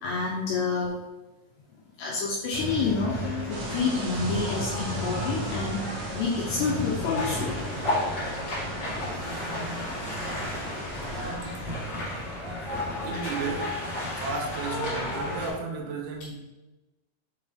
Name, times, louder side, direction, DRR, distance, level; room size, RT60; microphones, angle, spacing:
voice 1, 0.0-0.9 2.0-3.1 3.5-5.8 6.1-7.5, left 4 dB, 75° left, -4 dB, 2.6 m, -28 dB
sound 1, 2.5-15.5, left 1 dB, 40° left, 1.5 m, -32 dB
sound 2, 3.5-11.3, right 2 dB, 65° right, 2.4 m, -39 dB
voice 2, 11.2-11.5 13.0-13.8 14.0-16.4, right 4 dB, 85° right, 1 dB, 3.8 m, -34 dB
7.7 x 3.9 x 3.6 m, 1.0 s
omnidirectional pair, 5.9 m